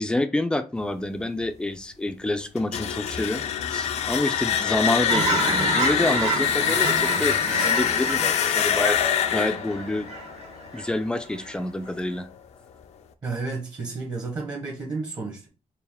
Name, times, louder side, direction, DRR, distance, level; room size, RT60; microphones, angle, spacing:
voice 1, 0.0-10.1 10.7-12.3, left 2 dB, 10° left, 0.3 m, -28 dB
sound 1, 2.6-11.4, left 9 dB, 75° left, 0.4 m, -25 dB
Fowl / Chirp tweet, 5.1-10.9 11.3-11.6, right 4 dB, 75° right, 1.1 m, -29 dB
voice 2, 13.2-15.5, right 3 dB, 35° right, 0.9 m, -31 dB
4.3 x 2.4 x 3.4 m
wide cardioid pair, 175°, 11 cm